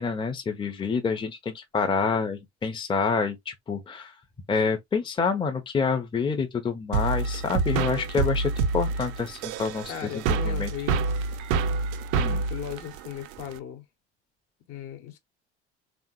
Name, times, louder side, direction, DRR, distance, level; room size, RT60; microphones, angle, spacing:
voice 1, 0.0-4.1 4.5-10.7 12.2-12.4, left 5 dB, 15° left, 0.7 m, -28 dB
sound 1, 6.9-13.6, right 4 dB, 55° right, 0.5 m, -27 dB
voice 2, 9.9-11.4 12.2-13.8 14.7-15.2, left 10 dB, 50° left, 1.0 m, -38 dB
3.5 x 2.1 x 2.8 m
figure-of-eight pair, 65°, 34 cm